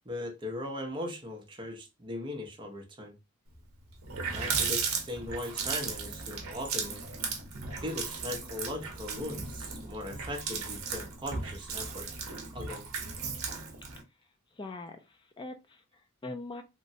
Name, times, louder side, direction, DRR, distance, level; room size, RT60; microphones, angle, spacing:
voice 1, 0.1-3.1 4.3-7.0 7.8-12.1 12.5-12.9, left 1 dB, 20° right, 0.7 m, -39 dB
Water tap faucet, 3.6-3.7 3.9-14.0, right 5 dB, 65° right, 0.7 m, -36 dB
voice 2, 14.5-16.6, left 2 dB, 20° left, 0.4 m, -42 dB
3.0 x 2.2 x 2.7 m
head